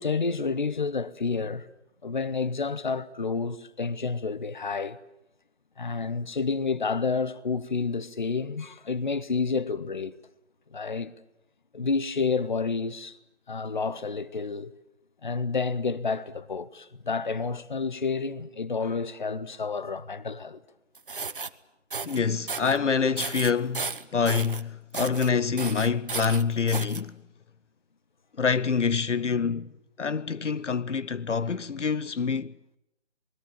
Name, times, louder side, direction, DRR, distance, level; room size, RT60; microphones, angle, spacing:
voice 1, 0.0-1.7 2.0-5.0 5.8-10.1 10.7-11.1 11.7-13.2 13.5-14.7 15.2-20.6, left 4 dB, 40° left, 0.9 m, -29 dB
sound 1, 20.9-21.5 21.9-22.2 22.5-22.8 23.2-24.6 24.9-25.3 25.6-27.0, right 4 dB, 45° right, 1.0 m, -34 dB
voice 2, 22.0-27.1 28.4-32.5, left 5 dB, 75° left, 0.9 m, -26 dB
27.0 x 20.5 x 8.9 m
figure-of-eight pair, 170°, 36 cm